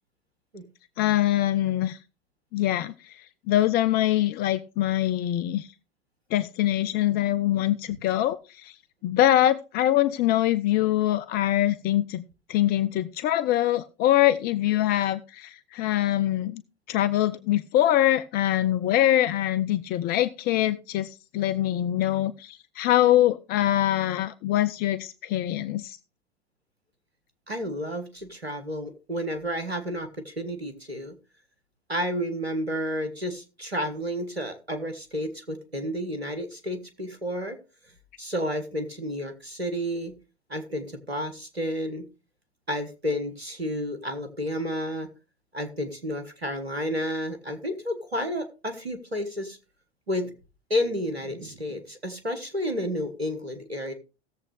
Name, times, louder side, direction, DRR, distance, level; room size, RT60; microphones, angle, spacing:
voice 1, 1.0-2.0 2.5-5.7 6.3-8.8 9.0-12.2 12.5-16.6 16.9-26.0, left 13 dB, 30° left, 14 dB, 0.5 m, -24 dB
voice 2, 27.5-31.1 31.9-37.6 38.2-40.1 40.5-42.0 42.7-45.1 45.5-49.6 50.1-50.3 50.7-53.9, equal, 85° right, 7 dB, 1.6 m, -31 dB
17.0 x 7.3 x 3.3 m, 0.31 s
figure-of-eight pair, 80°, 30 cm